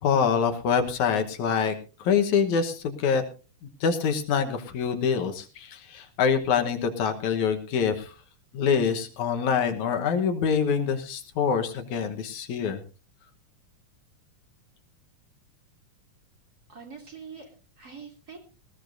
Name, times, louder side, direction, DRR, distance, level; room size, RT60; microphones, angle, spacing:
voice 1, 0.0-3.2 3.8-8.1 8.5-12.8, left 6 dB, 70° left, 6 dB, 2.5 m, -25 dB
voice 2, 16.7-18.4, right 5 dB, 30° right, 1 dB, 3.4 m, -44 dB
19.5 x 16.0 x 2.6 m, 0.34 s
omnidirectional pair, 3.5 m